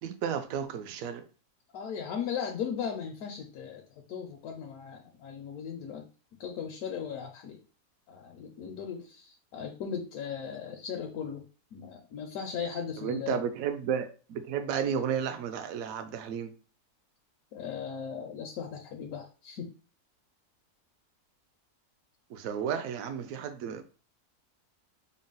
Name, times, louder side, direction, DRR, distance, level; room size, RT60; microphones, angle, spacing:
voice 1, 0.0-1.2 13.0-16.5 22.3-23.8, right 8 dB, 70° right, 0.9 m, -33 dB
voice 2, 1.7-3.8 4.1-6.1 6.4-7.6 8.1-11.4 11.7-13.4 17.5-19.7, left 7 dB, 75° left, 1.0 m, -37 dB
3.8 x 2.0 x 3.8 m
omnidirectional pair, 1.6 m